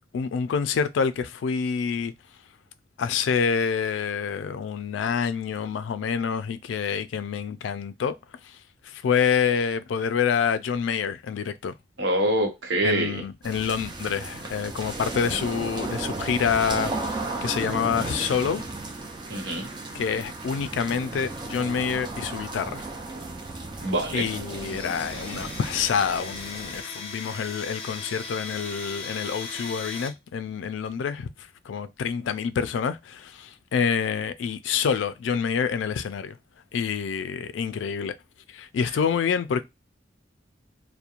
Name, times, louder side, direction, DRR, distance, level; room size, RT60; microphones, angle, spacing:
voice 1, 0.1-2.1 3.0-8.2 8.4-8.6 8.8-11.7 12.8-18.6 19.9-22.9 24.1-36.4 36.7-38.1 38.5-39.6, left 6 dB, 85° left, 0.3 m, -27 dB
voice 2, 12.0-13.2 19.3-19.7 23.8-24.3, right 1 dB, 85° right, 0.9 m, -25 dB
sound 1, 13.4-26.8, right 2 dB, 25° right, 0.5 m, -35 dB
Domestic sounds home sounds, 24.6-30.1, left 4 dB, 35° left, 0.7 m, -38 dB
2.9 x 2.1 x 2.4 m
head